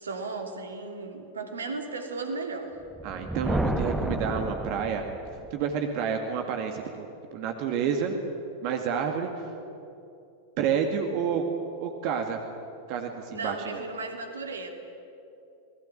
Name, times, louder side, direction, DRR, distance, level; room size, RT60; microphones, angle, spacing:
voice 1, 0.0-2.7 13.3-14.7, right 3 dB, 70° right, 5 dB, 3.0 m, -35 dB
Thunder, 2.8-5.5, right 1 dB, 5° right, 1.7 m, -31 dB
voice 2, 3.0-5.1 5.5-8.2 8.6-9.5 10.6-11.5 11.8-12.4 12.9-13.8, right 7 dB, 45° right, 4 dB, 2.2 m, -29 dB
28.0 x 20.0 x 8.9 m, 2.7 s
figure-of-eight pair, 90°, 0 cm